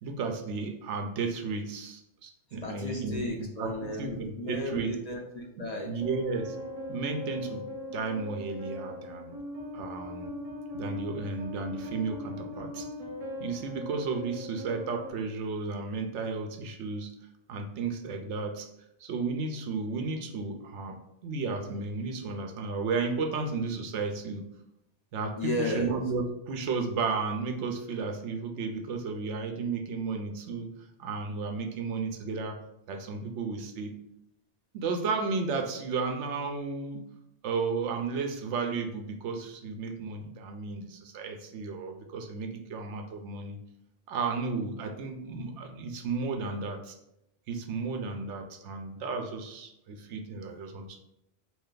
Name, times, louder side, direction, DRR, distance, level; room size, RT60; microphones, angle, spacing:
voice 1, 0.0-5.0 5.6-6.6 6.9-7.6 7.9-9.3 9.7-10.3 10.7-12.9 13.4-17.1 17.5-18.7 19.0-21.0 21.2-24.4 25.1-30.7 31.0-32.6 32.9-33.9 34.7-37.1 37.4-43.6 44.1-47.0 47.5-51.0, right 4 dB, 85° right, 4 dB, 0.9 m, -33 dB
voice 2, 2.6-5.9 25.4-25.9, left 1 dB, 50° left, -1 dB, 0.5 m, -34 dB
sound 1, 6.0-15.1, left 1 dB, 40° right, 0.6 m, -39 dB
3.2 x 2.8 x 3.8 m, 0.83 s
omnidirectional pair, 1.2 m